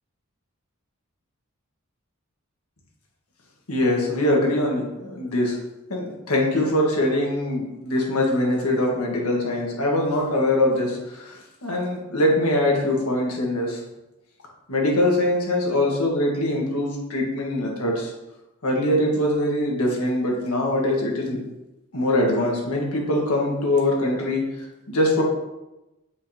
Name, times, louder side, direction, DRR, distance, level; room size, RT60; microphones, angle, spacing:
voice 1, 3.7-5.6 5.9-13.8 14.7-18.1 18.6-21.4 21.9-24.4 24.9-25.2, left 1 dB, 85° left, -1 dB, 1.6 m, -23 dB
7.6 x 5.0 x 2.9 m, 0.99 s
head